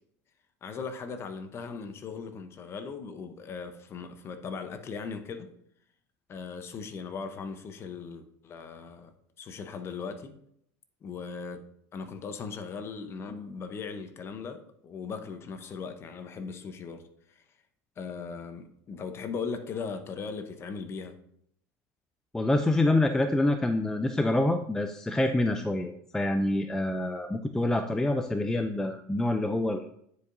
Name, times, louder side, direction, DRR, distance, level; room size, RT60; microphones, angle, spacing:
voice 1, 0.6-5.5 6.3-9.1 9.4-10.4 11.0-11.6 11.9-17.0 17.3-17.4 18.0-21.2, left 5 dB, 30° left, 8 dB, 0.8 m, -38 dB
voice 2, 22.3-30.0, left 1 dB, 5° left, 6 dB, 0.3 m, -26 dB
9.5 x 4.7 x 2.6 m, 0.71 s
supercardioid pair, 125°, 8 cm